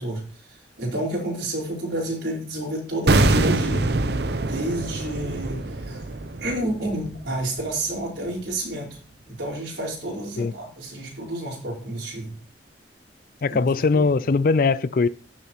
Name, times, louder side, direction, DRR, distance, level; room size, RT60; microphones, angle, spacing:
voice 1, 0.0-3.8 4.4-6.1 6.4-9.0 9.3-12.3 13.5-14.0, right 1 dB, 90° right, 4.8 m, -30 dB
sound 1, 3.1-8.1 8.3-8.5, right 2 dB, 65° right, 0.8 m, -24 dB
voice 2, 13.4-15.1, left 4 dB, 55° left, 0.4 m, -20 dB
16.0 x 7.0 x 3.0 m
head